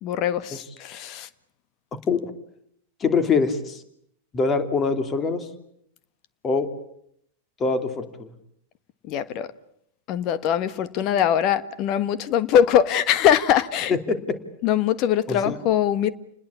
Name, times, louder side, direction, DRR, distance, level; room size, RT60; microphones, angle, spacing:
voice 1, 0.0-1.3 9.1-9.5 10.1-14.0 14.6-16.1, left 9 dB, 40° left, 1.4 m, -22 dB
voice 2, 1.9-2.3 3.0-3.8 4.3-5.5 6.4-6.7 7.6-8.3 13.9-14.4 15.3-15.6, left 4 dB, 25° left, 2.9 m, -24 dB
29.5 x 20.5 x 8.5 m
figure-of-eight pair, 90°, 0 cm